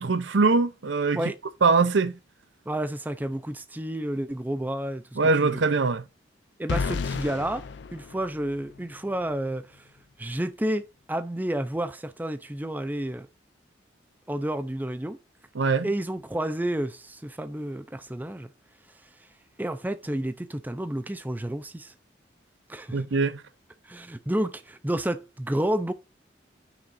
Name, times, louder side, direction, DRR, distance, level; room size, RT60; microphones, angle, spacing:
voice 1, 0.0-1.3 1.6-2.1 5.2-6.0 15.5-15.9 22.9-23.4, right 4 dB, 70° right, 0.6 m, -22 dB
voice 2, 2.7-5.0 5.4-5.6 6.6-7.7 7.9-9.7 10.2-13.3 14.3-15.2 15.8-18.5 19.6-21.9 22.7-23.0 23.9-25.9, right 1 dB, 10° right, 0.4 m, -30 dB
sound 1, 6.7-8.8, left 5 dB, 65° left, 0.4 m, -32 dB
6.0 x 3.6 x 5.5 m
head